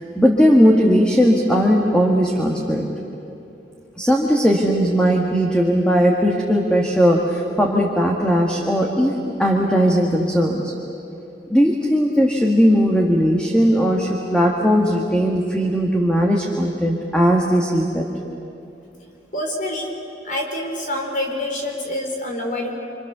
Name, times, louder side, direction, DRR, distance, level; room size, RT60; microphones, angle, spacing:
voice 1, 0.2-2.9 4.0-9.1 9.4-10.7 11.5-18.1, equal, 5° left, -1 dB, 1.8 m, -18 dB
voice 2, 19.3-19.9 20.2-22.8, left 1 dB, 50° left, 1 dB, 4.4 m, -26 dB
27.0 x 27.0 x 6.9 m, 2.6 s
head